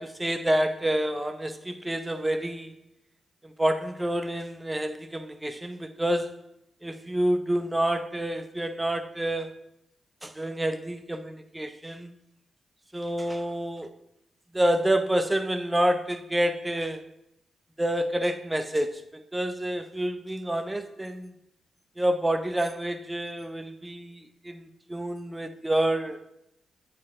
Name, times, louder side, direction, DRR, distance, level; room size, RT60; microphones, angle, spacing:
voice 1, 0.0-2.8 3.4-6.4 6.8-9.6 10.2-12.1 12.9-13.9 14.5-17.0 17.8-21.3 22.0-26.2, right 1 dB, 15° right, 0.8 m, -28 dB
8.4 x 4.5 x 3.6 m
supercardioid pair, 50°, 0 cm